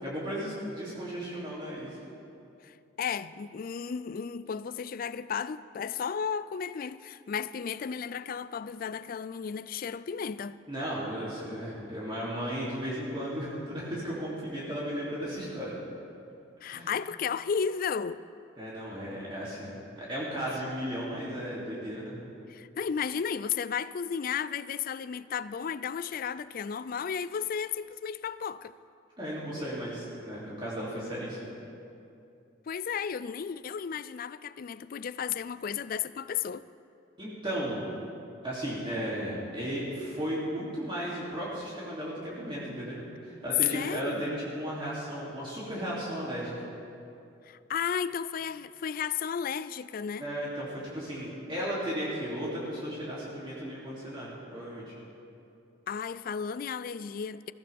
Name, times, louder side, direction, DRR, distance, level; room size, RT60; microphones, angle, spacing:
voice 1, 0.0-2.0 10.7-15.7 16.7-16.9 18.6-22.1 29.2-31.5 37.2-37.8 38.4-46.5 50.2-54.9, equal, 25° right, 2.8 m, -35 dB
voice 2, 2.6-10.6 16.6-18.2 22.5-28.7 32.7-36.6 43.7-44.3 47.4-50.3 55.9-57.5, left 7 dB, 45° left, 0.3 m, -34 dB
21.0 x 15.0 x 3.5 m
head